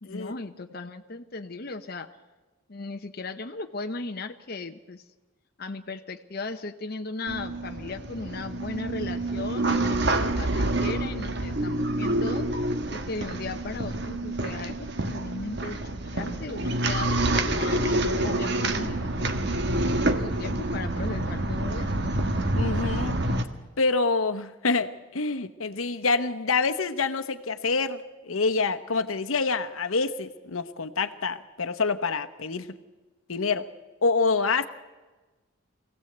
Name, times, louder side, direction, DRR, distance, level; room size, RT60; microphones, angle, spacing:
voice 1, 0.0-2.1 2.7-5.0 5.6-12.5 12.9-19.3 20.2-22.1, left 3 dB, 45° left, 6 dB, 0.8 m, -37 dB
sound 1, 7.3-23.4, right 1 dB, 50° right, 1.4 m, -27 dB
voice 2, 22.6-23.1 23.8-32.7 33.3-33.7 34.0-34.7, left 4 dB, 80° left, 10 dB, 1.0 m, -26 dB
23.5 x 16.5 x 8.0 m, 1.2 s
head